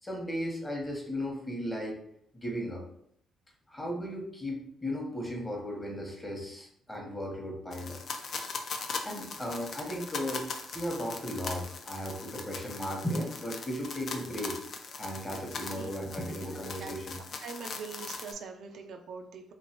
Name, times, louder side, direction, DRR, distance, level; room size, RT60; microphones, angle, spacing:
voice 1, 0.0-2.0 2.4-2.8 3.7-8.0 9.0-10.5 10.7-14.6 15.0-17.2, equal, 15° left, 0 dB, 0.9 m, -36 dB
sound 1, 7.7-18.3, left 4 dB, 55° left, 0.4 m, -40 dB
voice 2, 14.9-15.9 16.4-16.9 17.4-19.5, right 5 dB, 70° right, 4 dB, 0.3 m, -44 dB
3.1 x 2.5 x 2.8 m, 0.68 s
cardioid pair, 90°, 0 cm